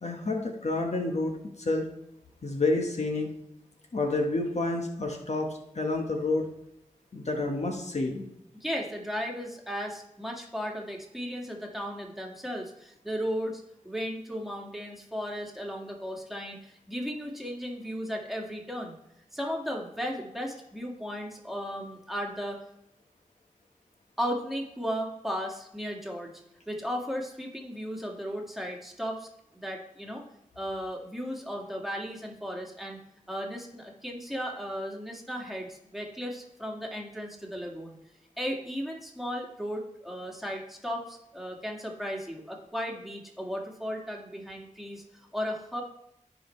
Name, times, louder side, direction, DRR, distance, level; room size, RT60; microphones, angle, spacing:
voice 1, 0.0-1.9 2.4-3.3 3.9-6.5 7.1-8.3, left 2 dB, 55° left, 2 dB, 1.3 m, -29 dB
voice 2, 8.6-18.9 19.3-22.6 24.2-26.3 26.7-29.3 29.5-30.2 30.6-33.0 33.3-38.0 38.4-45.0 45.3-45.8, equal, ahead, -1 dB, 2.0 m, -35 dB
14.5 x 5.2 x 3.2 m, 0.79 s
wide cardioid pair, 60°, 13 cm